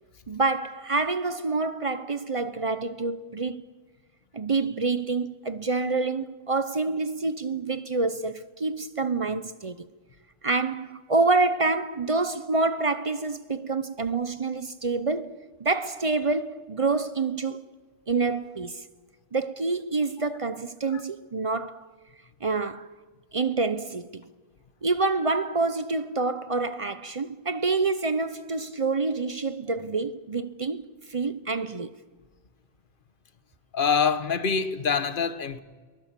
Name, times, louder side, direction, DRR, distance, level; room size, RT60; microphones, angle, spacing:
voice 1, 0.3-3.6 4.3-9.9 10.4-17.6 18.1-18.8 19.3-21.9 22.4-22.9 23.3-24.2 24.8-32.0, right 3 dB, 35° right, 0.7 m, -27 dB
voice 2, 33.7-35.6, left 6 dB, 55° left, 1.3 m, -25 dB
23.0 x 20.0 x 7.5 m
omnidirectional pair, 1.0 m